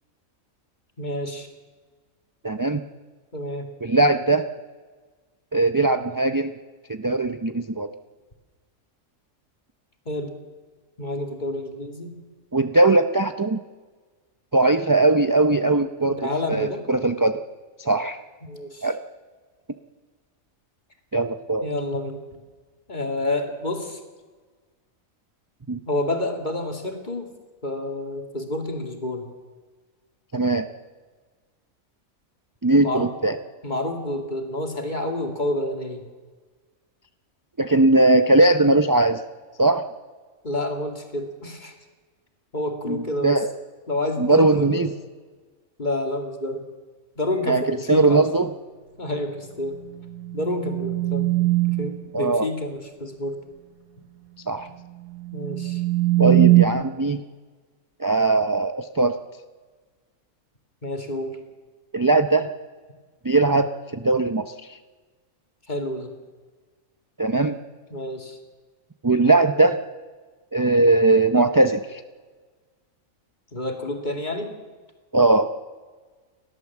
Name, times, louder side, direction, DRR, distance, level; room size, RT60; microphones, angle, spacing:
voice 1, 1.0-1.5 3.3-3.7 10.1-10.3 11.0-12.2 16.1-16.8 18.4-18.9 21.6-22.2 22.9-24.0 25.9-27.3 27.6-29.3 32.8-33.1 33.6-36.0 40.4-41.7 42.5-43.4 43.9-45.0 45.8-46.7 47.2-48.3 49.0-49.8 50.3-51.3 51.7-53.4 55.3-55.8 56.2-56.6 60.8-61.4 65.7-66.1 67.9-68.4 73.5-74.5, left 1 dB, 35° left, 3 dB, 2.4 m, -29 dB
voice 2, 2.4-2.8 3.8-4.5 5.5-6.5 6.9-7.9 12.5-13.6 14.5-17.4 17.8-18.2 18.8-19.0 21.1-21.7 25.7-25.8 30.3-30.7 32.6-33.4 37.6-39.2 39.6-39.9 42.9-43.0 43.2-43.5 44.2-44.9 47.5-48.5 52.1-52.5 54.5-54.7 56.2-57.2 58.0-59.2 61.9-62.5 63.2-64.8 67.2-67.6 69.0-69.8 70.5-72.0 75.1-75.5, right 2 dB, 30° right, 8 dB, 0.4 m, -20 dB
sound 1, 49.8-52.1 55.1-56.7, right 18 dB, 90° right, 1.4 m, -21 dB
30.0 x 12.0 x 7.3 m, 1.4 s
omnidirectional pair, 1.4 m